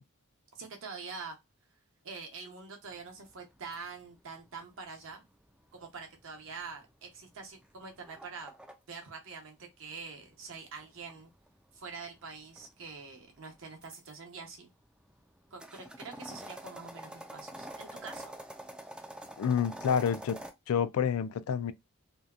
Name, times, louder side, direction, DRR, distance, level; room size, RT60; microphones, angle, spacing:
voice 1, 0.5-1.4 2.0-5.2 5.7-8.5 8.9-11.3 11.7-14.7 15.5-18.3, right 4 dB, 60° right, 0.8 m, -45 dB
sound 1, 2.9-8.8 10.0-14.2 14.7-20.5, right 1 dB, 5° right, 0.3 m, -48 dB
voice 2, 19.4-20.4 20.7-21.7, left 7 dB, 75° left, 0.3 m, -28 dB
2.7 x 2.2 x 2.3 m
head